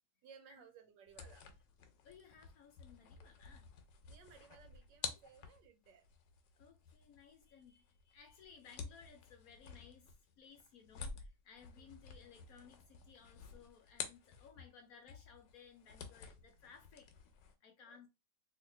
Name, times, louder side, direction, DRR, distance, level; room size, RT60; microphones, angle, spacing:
voice 1, 0.2-1.4 4.1-6.0 11.8-11.9 17.8-18.0, right 6 dB, 80° right, 1.4 m, -60 dB
sound 1, 1.1-14.8 15.1-17.5, left 6 dB, 85° left, 1.3 m, -51 dB
voice 2, 2.0-3.7 5.2-5.3 6.6-17.1 17.6-18.1, left 6 dB, 65° left, 0.9 m, -60 dB
2.9 x 2.8 x 3.2 m
omnidirectional pair, 1.9 m